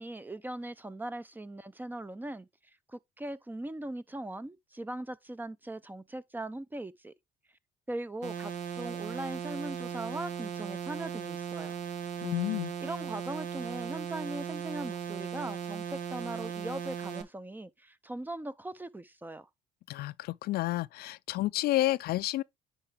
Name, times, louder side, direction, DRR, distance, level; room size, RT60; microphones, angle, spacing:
voice 1, 0.0-2.5 2.9-7.1 7.9-11.7 12.8-19.5, right 1 dB, 10° right, 0.5 m, -40 dB
sound 1, 8.2-17.2, right 7 dB, 80° right, 1.6 m, -37 dB
voice 2, 12.2-12.7 19.9-22.4, left 16 dB, 70° left, 0.4 m, -30 dB
10.0 x 3.8 x 3.4 m
cardioid pair, 110°, 17 cm